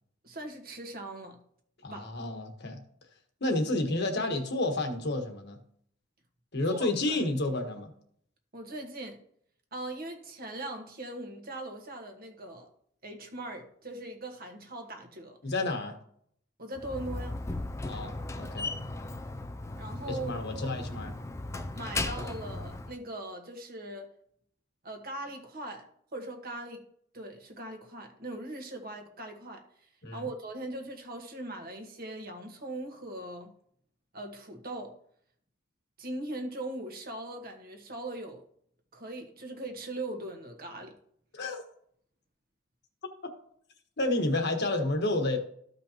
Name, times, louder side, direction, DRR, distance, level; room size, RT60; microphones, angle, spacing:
voice 1, 0.2-1.4 1.9-2.1 6.7-7.2 8.5-9.2 9.7-12.7 13.0-15.4 16.6-17.4 19.8-20.3 20.6-20.7 21.7-24.1 24.8-25.9 26.1-26.8 27.1-29.6 30.1-33.5 34.1-35.0 36.0-38.4 38.9-41.0, right 1 dB, 45° right, 1.4 m, -40 dB
voice 2, 1.8-2.8 3.4-5.6 6.5-7.9 15.4-16.0 17.8-18.7 20.1-21.1 30.0-30.2 41.3-41.6 44.0-45.4, left 2 dB, 55° left, 1.4 m, -30 dB
Slam, 16.8-22.9, left 2 dB, 15° left, 0.4 m, -37 dB
14.0 x 5.3 x 2.9 m
head